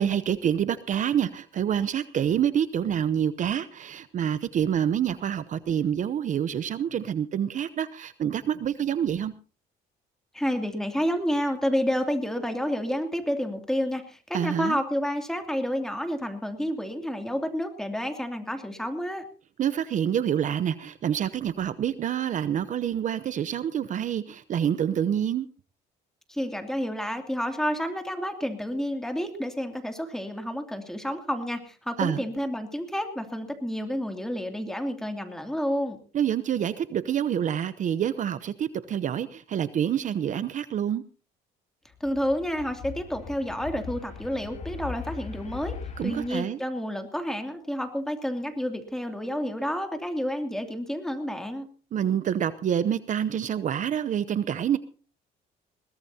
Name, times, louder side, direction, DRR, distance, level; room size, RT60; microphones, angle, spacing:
voice 1, 0.0-9.3 14.3-14.8 19.6-25.5 32.0-32.2 36.1-41.0 46.0-46.6 51.9-54.8, right 9 dB, 50° right, 14 dB, 0.8 m, -27 dB
voice 2, 10.3-19.3 26.3-36.0 42.0-45.7 46.0-51.7, equal, 5° left, 5 dB, 2.7 m, -30 dB
sound 1, 41.9-46.3, left 5 dB, 45° left, 2.5 m, -39 dB
21.5 x 18.0 x 2.8 m, 0.38 s
cardioid pair, 110°, 17 cm